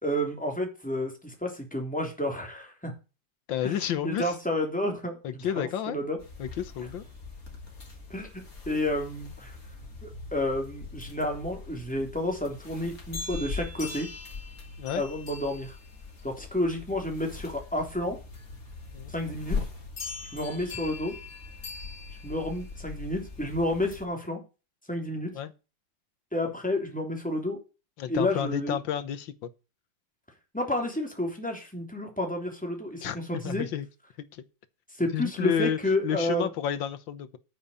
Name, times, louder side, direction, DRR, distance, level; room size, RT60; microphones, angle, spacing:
voice 1, 0.0-2.9 3.6-3.8 4.0-6.2 8.1-9.6 10.0-14.1 14.9-15.8 16.2-18.2 19.1-19.6 20.3-21.1 22.2-24.4 24.9-25.3 26.3-27.6 28.1-28.8 30.5-33.7 34.9-36.5, left 1 dB, 5° left, 3.2 m, -30 dB
voice 2, 3.5-4.2 5.2-6.0 6.4-7.0 14.8-15.0 18.9-19.1 25.3-25.5 28.0-29.5 33.0-33.9 34.3-34.4 35.1-35.8 36.0-37.4, left 9 dB, 85° left, 1.8 m, -30 dB
sound 1, 6.2-24.0, left 4 dB, 45° left, 3.1 m, -40 dB
9.3 x 8.3 x 6.8 m
omnidirectional pair, 2.0 m